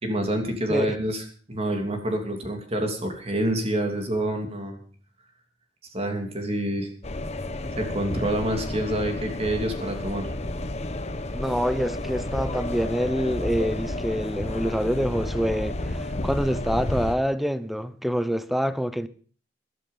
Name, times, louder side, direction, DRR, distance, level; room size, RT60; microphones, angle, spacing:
voice 1, 0.0-1.2 1.5-4.8 5.9-6.9 7.8-10.3, right 1 dB, 35° right, 3.0 m, -27 dB
sound 1, 7.0-17.2, left 1 dB, 35° left, 1.1 m, -31 dB
voice 2, 11.3-19.1, equal, ahead, 0.7 m, -26 dB
13.5 x 12.5 x 5.6 m
head